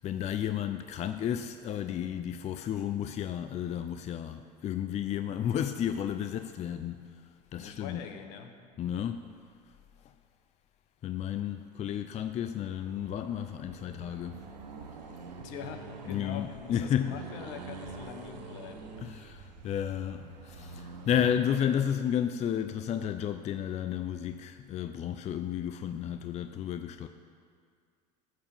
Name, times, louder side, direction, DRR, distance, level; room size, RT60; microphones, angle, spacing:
voice 1, 0.0-7.2 7.5-8.0 8.8-9.3 11.0-14.5 16.1-17.2 19.0-27.1, left 9 dB, 35° left, 0.4 m, -32 dB
voice 2, 7.6-8.5 15.4-18.9, left 8 dB, 65° left, 1.1 m, -43 dB
Accelerating revving vroom, 12.7-21.5, right 4 dB, 85° right, 1.0 m, -46 dB
13.5 x 4.7 x 7.1 m
hypercardioid pair, 75°, 21 cm